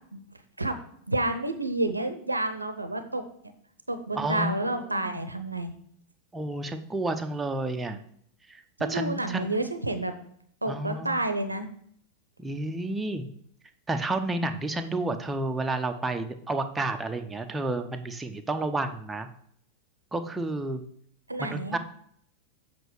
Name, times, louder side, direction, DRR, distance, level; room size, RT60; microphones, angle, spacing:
voice 1, 1.1-3.2 3.9-5.7 8.8-10.1 10.6-11.7 21.3-21.8, right 2 dB, 85° right, 9 dB, 0.7 m, -29 dB
voice 2, 4.2-5.2 6.3-8.0 8.5-8.6 8.9-9.5 10.7-11.2 12.4-13.3 13.9-19.3 20.1-20.8 21.4-21.8, right 2 dB, 10° right, 6 dB, 0.7 m, -31 dB
8.0 x 5.0 x 4.7 m, 0.66 s
figure-of-eight pair, 90°, 0 cm